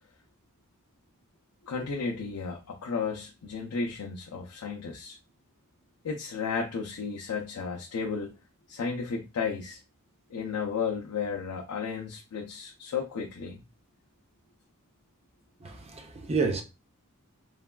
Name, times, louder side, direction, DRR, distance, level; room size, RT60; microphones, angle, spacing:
voice 1, 1.6-5.2 6.0-8.3 8.7-9.8 10.3-13.6, left 5 dB, 85° left, 0.5 m, -33 dB
voice 2, 15.6-16.6, right 4 dB, 30° right, 0.5 m, -29 dB
3.2 x 2.2 x 2.2 m
head